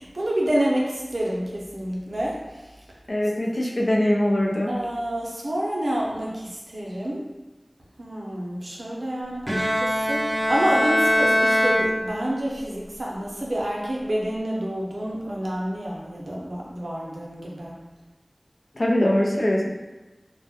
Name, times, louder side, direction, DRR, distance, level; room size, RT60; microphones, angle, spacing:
voice 1, 0.0-2.4 4.7-7.3 8.0-17.8, right 1 dB, 80° right, -4 dB, 0.5 m, -28 dB
voice 2, 3.1-4.7 18.7-19.7, left 1 dB, 65° left, -2 dB, 0.4 m, -22 dB
Bowed string instrument, 9.5-12.6, equal, 20° right, 0.3 m, -22 dB
2.2 x 2.0 x 2.8 m, 1.1 s
wide cardioid pair, 45°, 0 cm